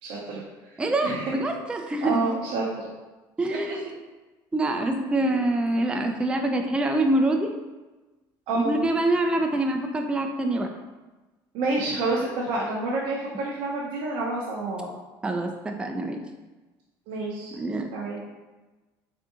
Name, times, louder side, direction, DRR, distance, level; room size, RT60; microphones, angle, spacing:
voice 1, 0.0-0.4 1.0-1.3 2.0-2.9 8.5-8.9 11.5-14.9 17.1-17.6 17.9-18.2, right 2 dB, 75° right, -5 dB, 0.6 m, -28 dB
voice 2, 0.8-2.3 3.4-3.9 4.5-7.5 8.5-10.7 15.2-16.2 17.5-17.9, right 1 dB, 10° right, 4 dB, 0.3 m, -25 dB
3.5 x 2.5 x 2.7 m, 1.2 s
supercardioid pair, 100°, 10 cm